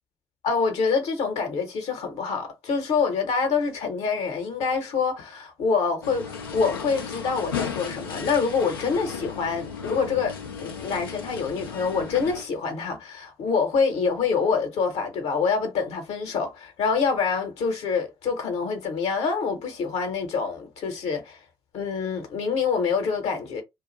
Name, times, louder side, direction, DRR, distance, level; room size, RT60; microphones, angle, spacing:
voice 1, 0.4-6.2 6.5-21.4 21.7-23.6, left 5 dB, 65° left, 1.0 m, -26 dB
sound 1, 6.0-12.4, left 6 dB, 85° left, 0.6 m, -35 dB
2.5 x 2.4 x 4.0 m
figure-of-eight pair, 45°, 12 cm